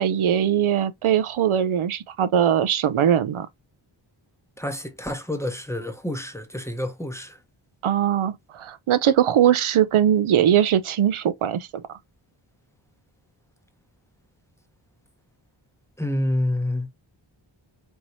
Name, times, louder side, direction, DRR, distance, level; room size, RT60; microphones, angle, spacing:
voice 1, 0.0-3.5 7.8-11.8, right 9 dB, 90° right, 0.6 m, -21 dB
voice 2, 4.6-7.4 16.0-16.9, left 1 dB, 5° left, 0.8 m, -28 dB
4.5 x 3.0 x 2.6 m
wide cardioid pair, 105°, 48 cm